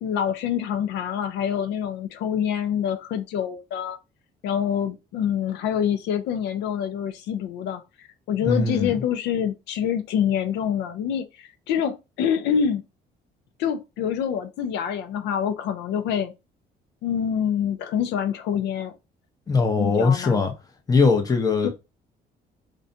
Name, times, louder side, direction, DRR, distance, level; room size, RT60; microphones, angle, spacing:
voice 1, 0.0-4.0 4.4-12.8 13.6-16.3 17.0-18.9 19.8-20.5 21.6-21.7, left 8 dB, 80° left, 0.4 m, -26 dB
voice 2, 8.4-8.9 19.5-20.5 20.9-21.7, left 4 dB, 20° left, 0.7 m, -20 dB
2.5 x 2.2 x 2.5 m
cardioid pair, 125°, 18 cm